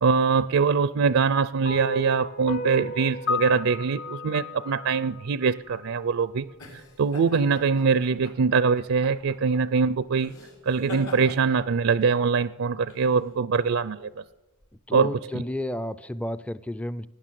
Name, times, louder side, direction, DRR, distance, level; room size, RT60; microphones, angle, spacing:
voice 1, 0.0-6.5 7.0-10.3 10.7-14.1 14.9-15.4, right 5 dB, 70° right, 17 dB, 0.4 m, -23 dB
sound 1, 1.6-6.0, left 3 dB, 50° left, 0.9 m, -33 dB
sound 2, 5.6-14.7, left 2 dB, 80° left, 4.7 m, -45 dB
voice 2, 14.9-17.1, left 1 dB, 5° left, 17 dB, 0.4 m, -31 dB
18.0 x 9.8 x 7.6 m, 1.1 s
head